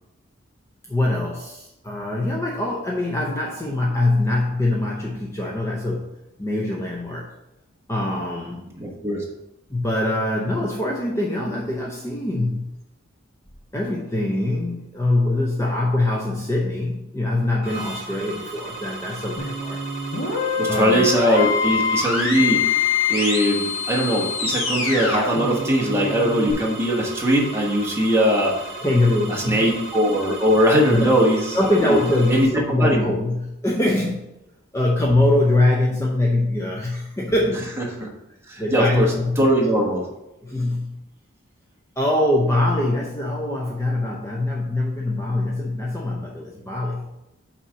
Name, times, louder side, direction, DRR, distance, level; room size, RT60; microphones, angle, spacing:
voice 1, 0.9-7.3 7.9-8.7 9.7-12.8 13.7-19.8 20.7-21.0 28.8-29.7 30.9-31.2 31.5-34.3 34.7-38.1 38.6-39.5 40.4-41.0 42.0-47.1, left 1 dB, 15° left, -2 dB, 0.6 m, -23 dB
voice 2, 8.8-9.2 20.6-28.7 29.3-31.6 31.8-32.0 32.3-33.1 38.0-38.1 38.5-40.1, equal, 10° right, -2 dB, 1.2 m, -21 dB
sound 1, 17.6-32.4, right 3 dB, 55° right, 2.1 m, -36 dB
sound 2, 19.4-26.5, left 5 dB, 65° left, 1.4 m, -25 dB
5.6 x 4.3 x 6.2 m, 0.91 s
head